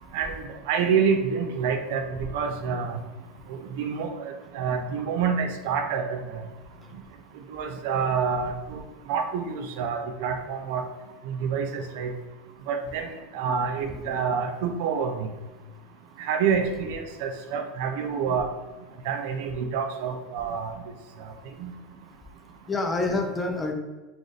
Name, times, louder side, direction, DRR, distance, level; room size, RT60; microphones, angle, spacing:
voice 1, 0.1-3.0 3.8-6.4 7.5-8.8 9.1-10.8 11.3-12.1 12.7-15.3 16.2-18.5 19.1-20.8 21.6-21.7, right 6 dB, 70° right, 6 dB, 0.4 m, -27 dB
voice 2, 13.9-14.2 16.6-16.9 22.7-23.7, left 2 dB, 15° left, 2 dB, 0.6 m, -29 dB
3.9 x 2.6 x 3.2 m, 1.2 s
supercardioid pair, 115°, 0 cm